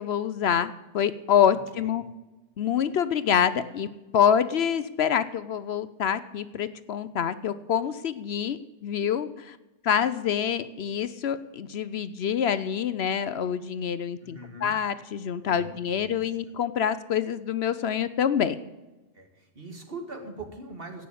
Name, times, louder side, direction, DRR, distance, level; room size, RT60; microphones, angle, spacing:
voice 1, 0.0-2.0 2.6-3.9 4.1-9.6 9.8-18.6, left 8 dB, 65° left, 14 dB, 0.9 m, -26 dB
voice 2, 1.5-2.0 14.2-14.7 15.4-16.3 19.1-21.1, right 2 dB, 50° right, 4 dB, 2.3 m, -42 dB
17.0 x 6.3 x 8.4 m, 1.1 s
omnidirectional pair, 1.2 m